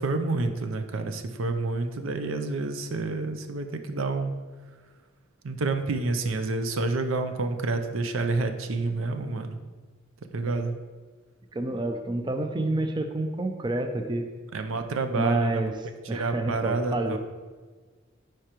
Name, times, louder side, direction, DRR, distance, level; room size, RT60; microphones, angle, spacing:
voice 1, 0.0-4.4 5.4-9.6 10.3-10.7 14.5-15.7 16.1-17.2, right 3 dB, 75° right, 7 dB, 0.5 m, -28 dB
voice 2, 11.5-14.3 15.1-15.7 16.1-17.2, right 2 dB, 20° right, 6 dB, 0.4 m, -29 dB
9.6 x 4.5 x 3.0 m, 1.4 s
head